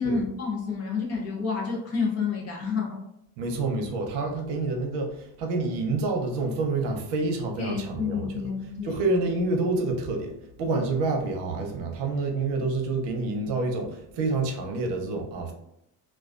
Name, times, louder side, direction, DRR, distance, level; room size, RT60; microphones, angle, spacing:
voice 1, 0.0-3.0 7.6-8.9, left 5 dB, 40° left, -2 dB, 0.6 m, -29 dB
voice 2, 3.4-8.5 8.8-10.3 10.6-15.5, right 3 dB, 85° right, 2 dB, 0.7 m, -28 dB
2.3 x 2.3 x 2.4 m, 0.78 s
cardioid pair, 175°, 41 cm